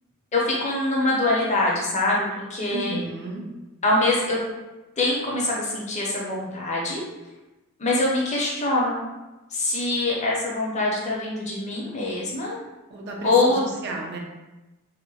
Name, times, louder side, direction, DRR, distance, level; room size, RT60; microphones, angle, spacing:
voice 1, 0.3-3.0 3.8-4.4 5.0-7.0 7.8-9.0 9.5-12.6 13.2-13.6, left 2 dB, 30° left, -4 dB, 0.5 m, -24 dB
voice 2, 2.7-3.5 12.9-14.2, right 3 dB, 50° right, 0 dB, 0.4 m, -33 dB
2.7 x 2.0 x 2.7 m, 1.1 s
head